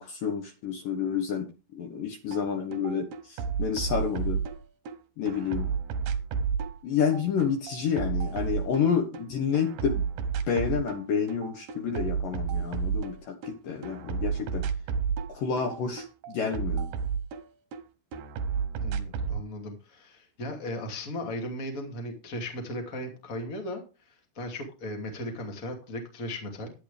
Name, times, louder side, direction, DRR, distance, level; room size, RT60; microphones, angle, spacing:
voice 1, 0.0-4.4 5.2-5.7 6.8-10.1 10.5-14.7 15.3-16.9, left 6 dB, 65° left, 5 dB, 2.7 m, -29 dB
sound 1, 2.3-2.4 2.7-4.9 5.3-9.2 9.5-11.0 11.3-13.5 13.8-17.8 18.1-19.4, right 6 dB, 70° right, 2.4 m, -31 dB
voice 2, 18.8-26.7, left 1 dB, 25° left, 3 dB, 2.3 m, -37 dB
11.5 x 11.0 x 3.4 m, 0.30 s
omnidirectional pair, 4.7 m